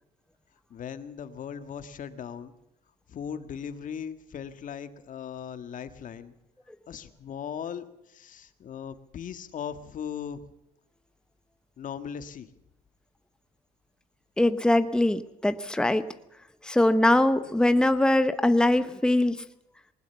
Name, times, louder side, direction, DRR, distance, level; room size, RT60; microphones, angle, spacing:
voice 1, 0.7-2.5 3.1-6.4 6.9-10.4 11.8-12.5, left 8 dB, 50° left, 10 dB, 1.7 m, -38 dB
voice 2, 14.4-16.1 16.6-19.4, left 1 dB, 5° left, 11 dB, 1.0 m, -22 dB
20.0 x 20.0 x 7.0 m, 0.79 s
cardioid pair, 110°, 17 cm